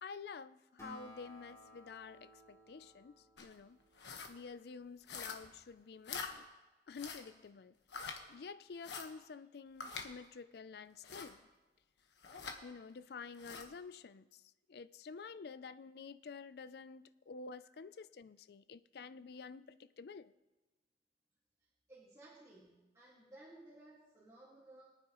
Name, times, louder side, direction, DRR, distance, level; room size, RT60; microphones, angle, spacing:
voice 1, 0.0-3.8 4.3-6.4 6.9-11.4 12.6-20.3, left 5 dB, 60° left, 0.4 m, -50 dB
Acoustic guitar, 0.8-4.5, equal, 15° left, 3.0 m, -57 dB
sound 1, 3.4-3.5 4.0-4.3 5.1-5.6 6.1-6.3 6.9-7.3 7.9-8.2 8.8-9.1 9.8-10.1 11.0-11.3 12.2-12.6 13.3-13.7, left 5 dB, 80° left, 1.3 m, -45 dB
voice 2, 21.9-24.9, right 2 dB, 20° right, 1.9 m, -58 dB
23.0 x 9.1 x 3.0 m
head